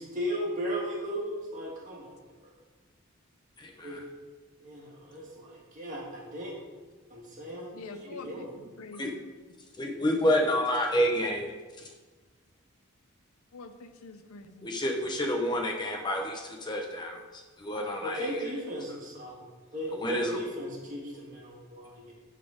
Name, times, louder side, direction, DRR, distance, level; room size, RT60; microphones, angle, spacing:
voice 1, 0.0-2.1 3.8-4.0 4.6-6.6 7.1-8.5 18.0-19.4 19.7-22.1, equal, 35° right, -4 dB, 2.0 m, -36 dB
voice 2, 3.6-4.0 9.0-9.1 9.8-11.5 14.6-18.4 19.9-20.5, left 1 dB, 20° left, 1 dB, 0.7 m, -29 dB
voice 3, 7.8-8.5 8.8-9.2 13.5-14.7, left 4 dB, 85° left, 9 dB, 0.6 m, -46 dB
10.5 x 4.1 x 5.0 m, 1.3 s
head